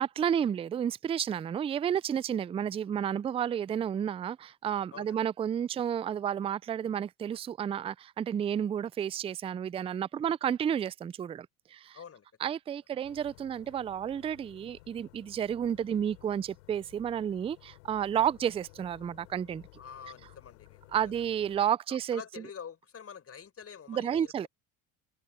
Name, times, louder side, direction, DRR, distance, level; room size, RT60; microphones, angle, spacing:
voice 1, 0.0-12.0 12.4-19.6 20.9-22.2 23.9-24.5, right 9 dB, 15° right, 0.3 m, -31 dB
voice 2, 11.9-12.3 13.0-13.1 19.8-21.2 22.1-24.5, left 7 dB, 35° left, 5.4 m, -47 dB
sound 1, 13.0-21.6, left 22 dB, 85° left, 3.9 m, -56 dB
open air
supercardioid pair, 85°, 40 cm